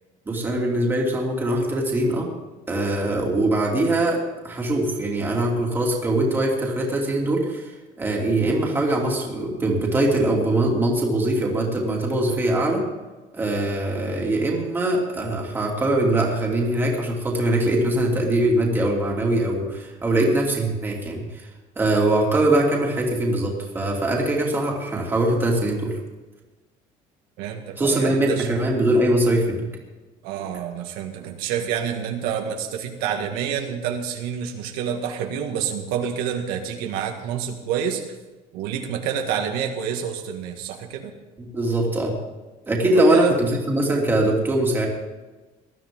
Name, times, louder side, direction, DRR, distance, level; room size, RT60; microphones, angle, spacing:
voice 1, 0.3-2.3 2.7-7.7 8.0-12.8 13.3-21.5 21.8-26.0 27.8-29.7 41.4-42.1 42.7-44.9, right 1 dB, 15° right, -2 dB, 2.7 m, -22 dB
voice 2, 27.4-28.5 30.2-38.0 38.5-41.1 42.9-43.4, right 8 dB, 80° right, 3 dB, 1.9 m, -28 dB
19.5 x 13.0 x 3.8 m, 1.2 s
cardioid pair, 175°, 15 cm